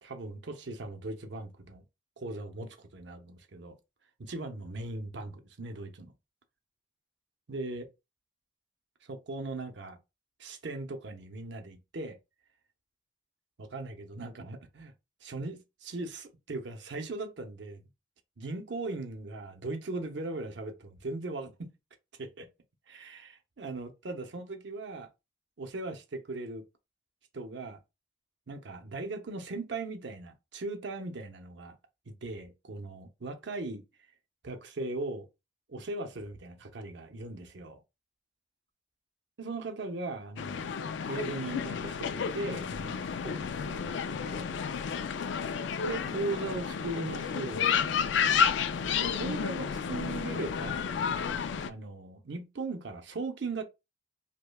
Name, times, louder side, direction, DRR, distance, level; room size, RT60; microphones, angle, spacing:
voice 1, 0.0-1.8 2.2-3.8 4.2-6.1 7.5-7.9 9.1-10.0 10.4-12.2 13.6-14.9 15.2-17.8 18.4-21.7 22.2-22.5 22.9-25.1 25.6-26.6 27.3-27.8 28.5-31.8 32.1-33.8 34.4-35.3 35.7-37.8 39.4-40.7 41.1-44.5 45.9-47.7 49.0-50.8 51.7-53.6, right 2 dB, 70° right, 0.6 m, -39 dB
sound 1, 40.4-51.7, left 7 dB, 70° left, 0.3 m, -31 dB
5.1 x 2.2 x 2.2 m
head